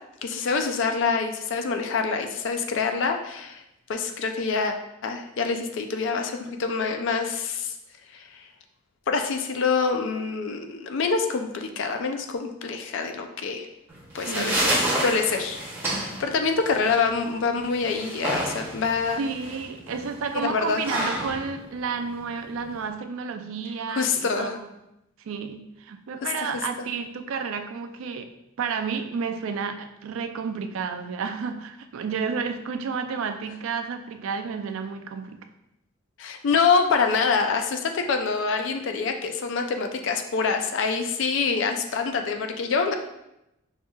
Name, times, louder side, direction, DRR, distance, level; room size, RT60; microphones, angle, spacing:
voice 1, 0.2-3.6 3.9-4.7 5.0-7.7 8.1-8.4 9.1-13.7 14.1-14.7 15.0-15.6 16.0-19.2 20.3-20.8 23.9-24.6 36.2-42.9, left 5 dB, 60° left, 5 dB, 0.4 m, -26 dB
sound 1, 13.9-22.9, right 1 dB, 10° right, 0.7 m, -30 dB
voice 2, 14.3-14.7 19.2-24.7 25.2-35.4 41.5-41.7, right 5 dB, 75° right, 7 dB, 0.4 m, -31 dB
5.6 x 2.7 x 2.3 m, 0.87 s
head